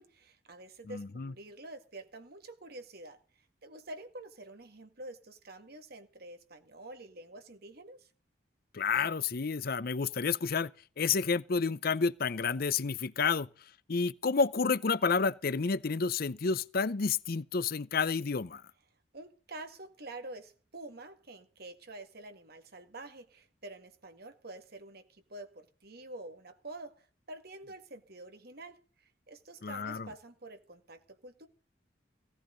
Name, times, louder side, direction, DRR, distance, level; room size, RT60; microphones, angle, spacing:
voice 1, 0.0-8.1 19.1-31.5, right 2 dB, 55° right, 2.0 m, -48 dB
voice 2, 0.9-1.3 8.7-10.7 11.0-13.5 13.9-18.6 29.6-30.1, left 5 dB, 55° left, 0.6 m, -30 dB
17.0 x 14.5 x 3.9 m
head